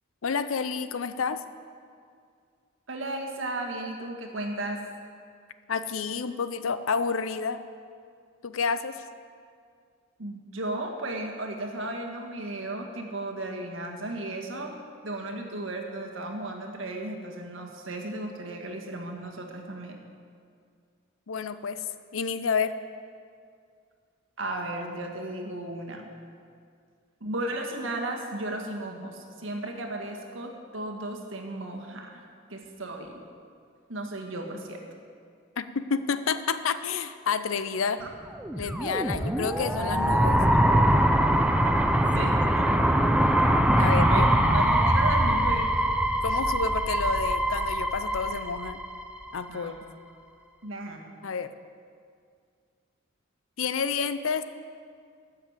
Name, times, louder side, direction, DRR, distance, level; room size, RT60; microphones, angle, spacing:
voice 1, 0.2-1.4 5.7-7.6 8.4-9.0 21.3-21.8 22.1-22.7 35.6-38.0 38.6-40.4 43.8-44.3 46.2-48.8 49.3-49.7 51.2-51.5 53.6-54.4, left 5 dB, 85° left, 12 dB, 0.6 m, -29 dB
voice 2, 2.9-4.8 10.2-14.7 15.0-20.0 24.4-26.1 27.2-32.2 32.5-33.2 33.9-34.8 38.0-38.1 42.1-42.7 44.1-44.3 44.5-45.7 49.5-49.7 50.6-51.0, right 1 dB, 75° right, 2 dB, 1.6 m, -35 dB
sound 1, 38.4-49.3, right 1 dB, 5° right, 0.5 m, -23 dB
12.5 x 6.7 x 7.9 m, 2.2 s
head